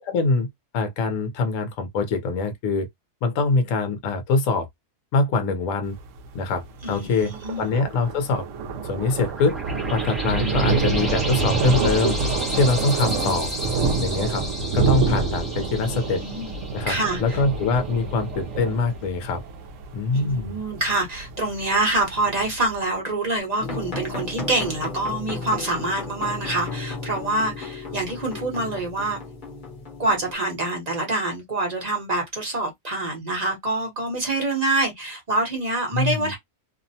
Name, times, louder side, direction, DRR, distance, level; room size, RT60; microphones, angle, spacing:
voice 1, 0.0-2.9 3.2-4.7 5.1-6.0 6.3-7.3 7.6-8.5 8.8-9.6 9.9-12.2 12.5-13.5 14.0-14.4 14.7-16.2 16.7-19.4 19.9-20.5 35.9-36.3, left 3 dB, 60° left, 1.0 m, -23 dB
Thunder, 5.8-22.8, right 4 dB, 70° right, 0.8 m, -27 dB
voice 2, 6.8-7.7 15.8-16.5 16.9-17.4 20.1-29.2 30.0-36.4, right 2 dB, 35° right, 0.8 m, -26 dB
sound 1, 9.0-18.1, left 1 dB, ahead, 0.7 m, -34 dB
sound 2, 23.6-30.3, left 3 dB, 35° left, 0.9 m, -34 dB
2.8 x 2.0 x 2.7 m
omnidirectional pair, 1.7 m